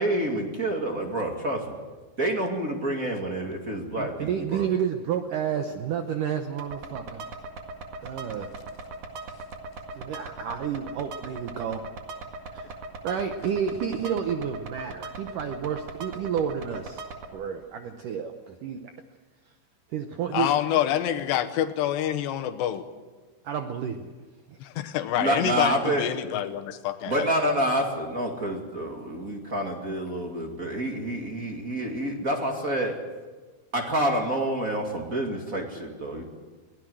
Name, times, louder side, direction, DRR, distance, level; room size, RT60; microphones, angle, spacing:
voice 1, 0.0-1.7 2.2-4.6 25.2-26.0 27.1-33.0 33.7-36.2, right 1 dB, 30° right, 2 dB, 1.7 m, -28 dB
voice 2, 4.0-7.3 8.0-8.5 9.9-11.8 12.5-12.7 13.0-17.1 17.3-18.9 19.9-20.5 23.4-24.1 24.5-24.6, right 8 dB, 70° right, 6 dB, 2.1 m, -30 dB
sound 1, 6.6-17.3, right 3 dB, 55° right, 3.0 m, -40 dB
voice 3, 20.3-22.9 24.6-27.3, left 11 dB, 90° left, 7 dB, 3.3 m, -27 dB
23.0 x 18.0 x 7.9 m, 1.3 s
omnidirectional pair, 4.8 m